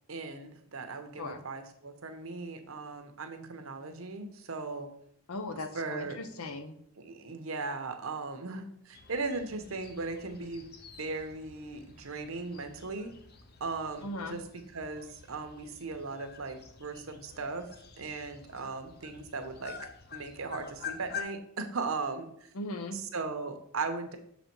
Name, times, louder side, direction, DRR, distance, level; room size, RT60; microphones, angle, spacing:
voice 1, 0.1-4.9 5.7-6.2 7.0-10.7 11.0-13.1 13.6-17.7 18.0-19.7 20.1-22.3 22.9-24.2, right 3 dB, 70° right, 7 dB, 0.9 m, -38 dB
voice 2, 5.3-6.8 14.0-14.4 22.5-23.0, left 2 dB, 80° left, 9 dB, 0.7 m, -38 dB
sound 1, 8.9-21.2, left 7 dB, 45° left, 0.7 m, -48 dB
6.6 x 4.1 x 4.6 m, 0.70 s
head